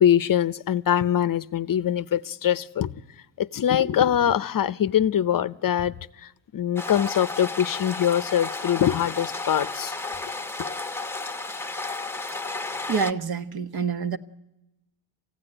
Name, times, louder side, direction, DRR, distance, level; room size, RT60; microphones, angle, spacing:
voice 1, 0.0-2.9 3.4-6.0 6.2-10.0, left 10 dB, 45° left, 0.7 m, -23 dB
sound 1, 6.8-13.1, left 3 dB, 5° left, 0.9 m, -33 dB
voice 2, 12.9-14.2, right 6 dB, 50° right, 1.3 m, -27 dB
24.5 x 16.0 x 9.9 m
cardioid pair, 95°, 49 cm